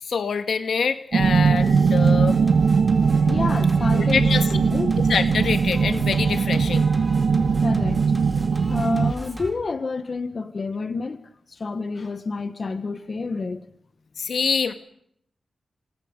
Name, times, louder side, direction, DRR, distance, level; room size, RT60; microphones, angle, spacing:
voice 1, 0.0-2.4 3.9-4.7 5.0-6.9 14.2-14.7, left 6 dB, 80° left, 1.8 m, -25 dB
sound 1, 1.1-9.1, right 5 dB, 80° right, 1.4 m, -20 dB
Singing, 1.2-9.5, equal, 10° right, 4.3 m, -35 dB
voice 2, 3.2-5.0 7.6-8.0 8.7-13.6, left 4 dB, 50° left, 1.4 m, -29 dB
29.5 x 26.0 x 5.4 m
cardioid pair, 80°, 0 cm